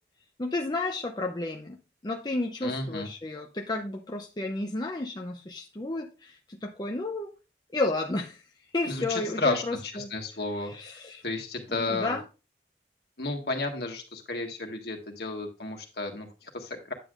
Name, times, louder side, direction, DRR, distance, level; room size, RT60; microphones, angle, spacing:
voice 1, 0.4-1.8 2.0-7.3 7.7-8.4 8.7-10.1 10.7-11.2 11.7-12.2, left 2 dB, 25° left, 2 dB, 0.6 m, -32 dB
voice 2, 2.6-3.1 8.8-12.2 13.2-16.9, left 3 dB, 60° left, 2 dB, 1.6 m, -33 dB
9.2 x 8.0 x 2.5 m, 0.31 s
head